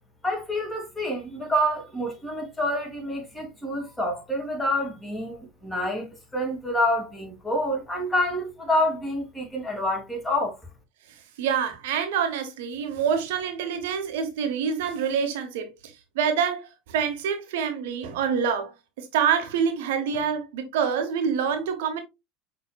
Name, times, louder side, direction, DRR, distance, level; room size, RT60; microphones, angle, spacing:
voice 1, 0.2-10.6, left 1 dB, 15° left, 2.7 m, -27 dB
voice 2, 11.4-22.0, right 7 dB, 75° right, 1.1 m, -26 dB
6.1 x 3.6 x 2.4 m
hypercardioid pair, 80°, 0 cm